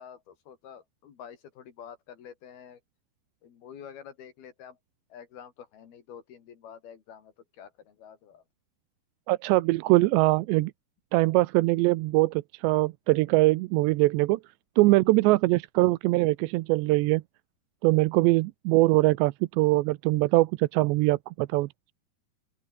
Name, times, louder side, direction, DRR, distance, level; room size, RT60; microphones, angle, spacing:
voice 1, 0.0-2.8 3.4-4.8 5.1-8.4, left 8 dB, 60° left, 4.4 m, -48 dB
voice 2, 9.3-10.7 11.1-14.4 14.8-17.2 17.8-21.7, right 20 dB, 85° right, 2.9 m, -22 dB
open air
omnidirectional pair, 5.1 m